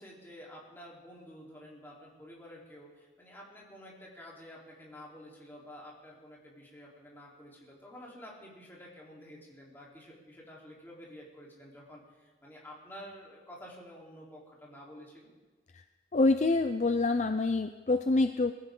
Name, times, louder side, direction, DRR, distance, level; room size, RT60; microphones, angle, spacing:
voice 1, 0.0-15.3, equal, 10° left, -5 dB, 3.7 m, -50 dB
voice 2, 16.1-18.5, left 3 dB, 40° left, 8 dB, 0.5 m, -26 dB
22.0 x 15.0 x 3.8 m, 1.3 s
head